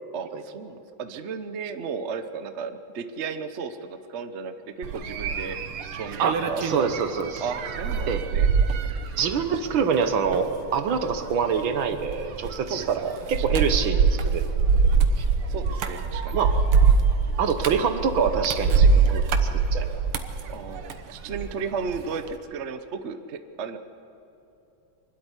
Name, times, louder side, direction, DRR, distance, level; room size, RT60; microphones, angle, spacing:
voice 1, 0.1-5.6 5.9-6.9 7.4-8.5 12.7-13.1 13.4-13.8 15.5-16.4 20.5-23.8, right 5 dB, 50° right, 9 dB, 0.9 m, -34 dB
sound 1, 4.8-21.5 21.9-22.3, right 5 dB, 90° right, 2.0 m, -24 dB
voice 2, 6.2-7.4 8.1-8.2 9.2-14.5 15.2-15.3 16.3-16.5 17.4-19.2 19.5-19.9, right 6 dB, 70° right, 8 dB, 1.9 m, -25 dB
24.5 x 12.5 x 9.9 m, 2.9 s
omnidirectional pair, 2.3 m